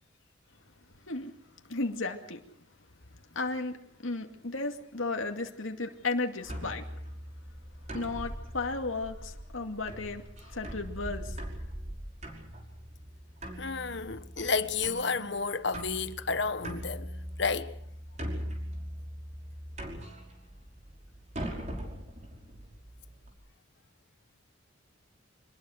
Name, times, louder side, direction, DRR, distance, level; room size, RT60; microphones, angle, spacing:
voice 1, 1.7-2.4 3.3-6.9 7.9-11.3, left 3 dB, 85° left, 2.4 m, -34 dB
sound 1, 6.4-23.3, equal, 35° right, 5.5 m, -41 dB
voice 2, 13.6-17.1 17.4-17.7, left 4 dB, 60° left, 1.4 m, -31 dB
26.0 x 20.5 x 6.6 m
head